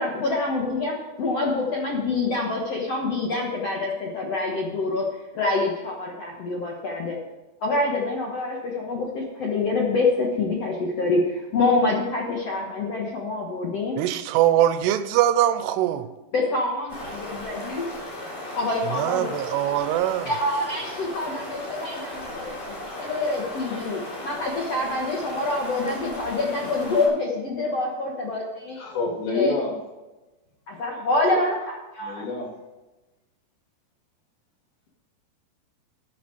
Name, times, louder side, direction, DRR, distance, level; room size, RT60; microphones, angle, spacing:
voice 1, 0.0-7.2 7.6-14.0 16.3-17.9 18.5-19.3 20.2-22.5 23.0-28.8 29.3-29.5 30.7-32.3, left 3 dB, 70° left, 1.5 m, -26 dB
voice 2, 14.0-16.1 18.9-20.3, right 12 dB, 85° right, 2.7 m, -22 dB
sound 1, 16.9-27.1, left 1 dB, 50° left, 5.3 m, -36 dB
voice 3, 28.8-29.8 32.0-32.5, left 3 dB, 85° left, 4.9 m, -27 dB
13.5 x 9.2 x 4.6 m
omnidirectional pair, 4.9 m